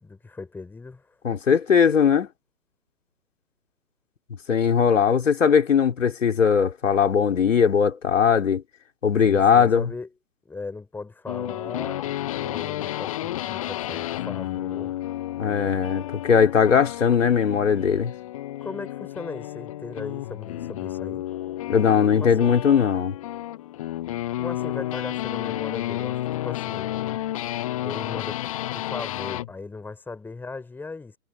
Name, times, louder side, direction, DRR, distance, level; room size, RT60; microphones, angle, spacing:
voice 1, 0.0-1.2 9.2-10.1 10.5-14.9 18.6-21.2 22.1-22.6 24.4-26.9 27.8-31.2, left 3 dB, 5° left, 3.8 m, -38 dB
voice 2, 1.2-2.3 4.5-8.6 9.0-9.9 15.4-18.1 21.7-23.1, left 7 dB, 55° left, 3.5 m, -19 dB
sound 1, 11.3-29.5, left 14 dB, 25° left, 0.9 m, -31 dB
figure-of-eight pair, 130°, 45 cm